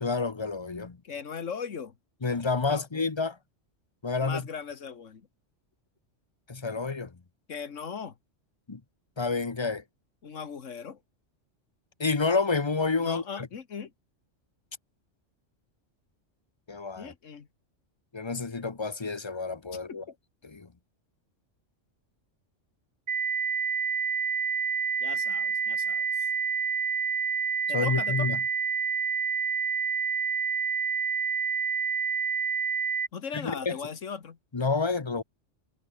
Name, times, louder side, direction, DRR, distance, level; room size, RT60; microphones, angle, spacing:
voice 1, 0.0-1.0 2.2-3.4 4.0-4.5 6.5-7.1 8.7-8.8 9.2-9.8 12.0-13.5 16.7-17.1 18.1-20.0 20.4-20.7 27.7-28.4 33.4-33.8 34.5-35.2, left 4 dB, 25° left, 0.8 m, -29 dB
voice 2, 1.0-2.0 2.7-3.0 4.2-5.3 7.5-8.1 10.2-11.0 13.0-13.9 17.0-17.5 19.9-20.1 25.0-26.3 27.7-28.3 33.1-34.4, left 6 dB, 80° left, 1.8 m, -38 dB
sound 1, 23.1-33.1, right 6 dB, 55° right, 1.5 m, -28 dB
omnidirectional pair, 1.3 m